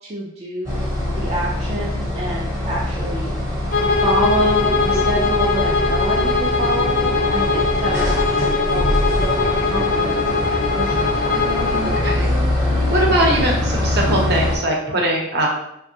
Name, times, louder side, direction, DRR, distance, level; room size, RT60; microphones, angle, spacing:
voice 1, 0.0-3.3 4.0-8.9 9.2-12.2, right 1 dB, 30° right, -4 dB, 0.3 m, -28 dB
sound 1, 0.6-14.6, left 1 dB, 15° right, 0.7 m, -23 dB
Bowed string instrument, 3.7-12.2, left 4 dB, 45° left, 0.4 m, -21 dB
sound 2, 3.8-11.9, equal, 90° right, 0.8 m, -31 dB
voice 2, 12.0-12.3 12.9-15.5, right 1 dB, 50° right, -1 dB, 0.7 m, -20 dB
3.4 x 2.1 x 2.7 m, 0.80 s
head